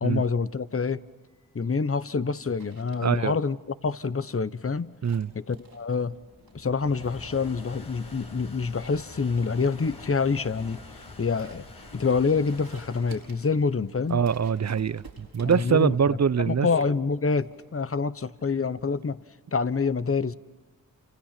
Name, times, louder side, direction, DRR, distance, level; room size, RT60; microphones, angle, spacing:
voice 1, 0.0-1.0 1.5-3.6 3.8-4.9 5.3-6.2 6.5-10.8 11.2-11.6 11.9-14.2 15.4-15.9 16.4-19.2 19.5-20.4, left 4 dB, 40° left, 1.1 m, -26 dB
sound 1, 1.2-19.5, right 4 dB, 85° right, 4.8 m, -54 dB
voice 2, 3.0-3.3 5.0-5.3 14.1-16.7, right 7 dB, 50° right, 0.8 m, -24 dB
sound 2, 3.8-17.2, left 2 dB, 80° left, 6.6 m, -47 dB
29.0 x 27.0 x 6.0 m
cardioid pair, 45°, 36 cm